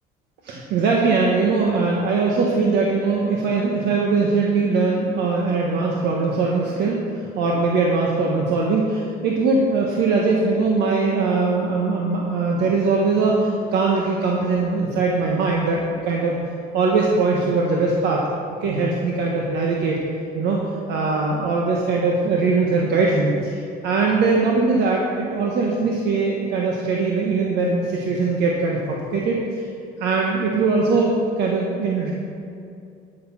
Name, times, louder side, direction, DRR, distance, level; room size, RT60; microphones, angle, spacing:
voice 1, 0.4-7.0 7.3-15.8 16.0-16.4 16.7-18.2 18.6-20.0 20.3-20.6 20.9-29.7 30.0-32.1, right 3 dB, 80° right, -2 dB, 1.3 m, -21 dB
12.0 x 6.8 x 5.9 m, 2.5 s
cardioid pair, 110°, 17 cm